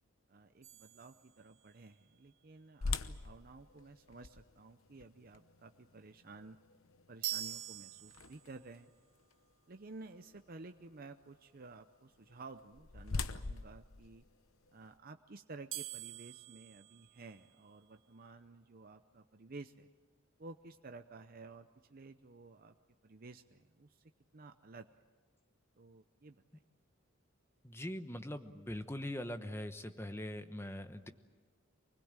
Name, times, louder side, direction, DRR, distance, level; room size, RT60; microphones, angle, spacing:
voice 1, 0.3-6.6 7.1-8.9 9.7-14.2 14.7-19.9 20.4-22.8 23.0-24.9 25.7-26.6, right 3 dB, 45° right, 7 dB, 0.7 m, -53 dB
sound 1, 0.6-1.9 7.2-8.7 15.7-17.8, right 14 dB, 70° right, 2.0 m, -45 dB
sound 2, 2.8-8.8 9.3-9.4 10.0-10.2 12.3-15.0, left 3 dB, 85° left, 0.9 m, -43 dB
voice 2, 27.6-31.1, left 1 dB, 10° left, 8 dB, 1.0 m, -42 dB
25.0 x 20.0 x 8.9 m, 1.4 s
head